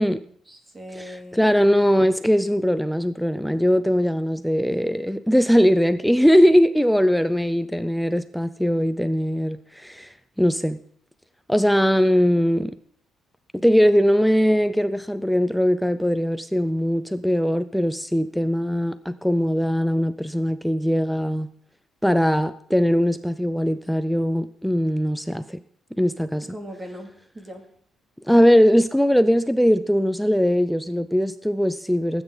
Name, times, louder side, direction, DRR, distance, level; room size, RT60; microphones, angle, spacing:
voice 1, 0.0-1.5 26.5-27.6, equal, 20° right, 2.6 m, -40 dB
voice 2, 0.9-10.8 11.5-12.8 13.5-21.5 22.0-25.6 26.0-26.5 28.2-32.2, equal, ahead, 0.5 m, -20 dB
20.0 x 9.0 x 4.0 m
cardioid pair, 130°, 0 cm